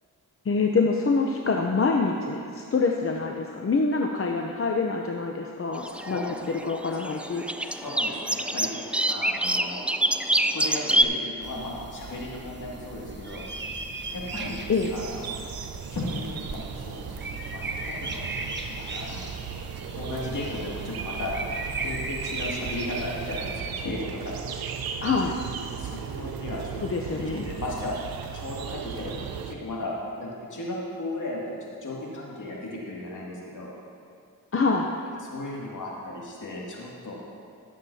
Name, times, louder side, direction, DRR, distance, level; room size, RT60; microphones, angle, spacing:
voice 1, 0.4-7.4 14.7-14.9 25.0-25.4 26.8-27.5 34.5-34.9, left 4 dB, 40° left, 1 dB, 0.7 m, -26 dB
sound 1, 5.8-11.0, right 1 dB, 5° right, 0.3 m, -26 dB
voice 2, 6.0-6.4 7.6-9.8 10.3-13.5 14.1-14.6 14.9-15.4 15.9-17.1 17.5-18.3 18.7-19.2 20.0-21.3 21.8-24.2 24.5-24.6 25.7-26.8 27.1-27.9 28.3-33.7 35.2-37.2, left 2 dB, 60° left, -4 dB, 2.4 m, -35 dB
sound 2, 11.4-23.6, right 2 dB, 30° right, 1.0 m, -38 dB
sound 3, 14.0-29.5, right 7 dB, 80° right, 0.7 m, -36 dB
15.0 x 7.4 x 2.8 m, 2.4 s
cardioid pair, 60°, 36 cm